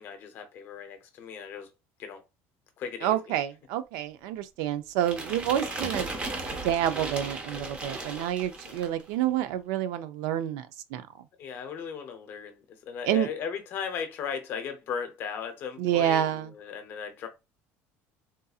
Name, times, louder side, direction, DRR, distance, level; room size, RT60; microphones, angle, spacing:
voice 1, 0.0-1.7 2.0-2.2 2.8-3.2 8.7-8.8 11.4-17.3, left 7 dB, 40° left, 0.7 m, -37 dB
voice 2, 3.0-6.1 6.6-11.3 13.0-13.3 15.8-16.5, right 11 dB, 75° right, 0.5 m, -28 dB
sound 1, 5.0-9.0, right 2 dB, 20° right, 0.7 m, -36 dB
3.8 x 2.6 x 2.4 m
cardioid pair, 170°, 6 cm